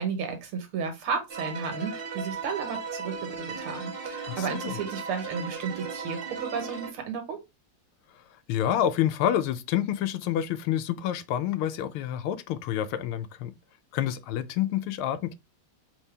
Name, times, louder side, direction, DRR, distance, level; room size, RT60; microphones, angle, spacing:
voice 1, 0.0-7.4, right 5 dB, 90° right, 2.0 m, -33 dB
sound 1, 1.3-6.9, right 5 dB, 40° right, 0.8 m, -36 dB
voice 2, 4.3-4.8 8.5-13.5 13.9-15.3, left 11 dB, 85° left, 1.5 m, -28 dB
4.6 x 3.4 x 3.3 m
omnidirectional pair, 2.3 m